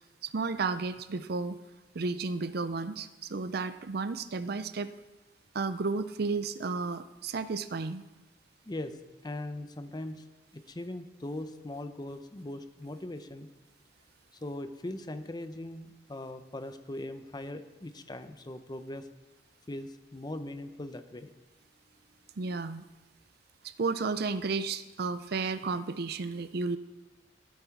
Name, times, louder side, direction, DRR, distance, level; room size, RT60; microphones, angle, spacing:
voice 1, 0.2-1.6 1.9-4.9 5.5-8.0 22.4-22.8 23.6-26.8, right 4 dB, 55° right, 13 dB, 0.5 m, -32 dB
voice 2, 8.7-9.0 9.2-10.2 10.5-13.5 14.4-19.1 19.7-21.3, left 1 dB, 20° left, 9 dB, 0.7 m, -40 dB
15.0 x 8.4 x 4.6 m, 1.1 s
head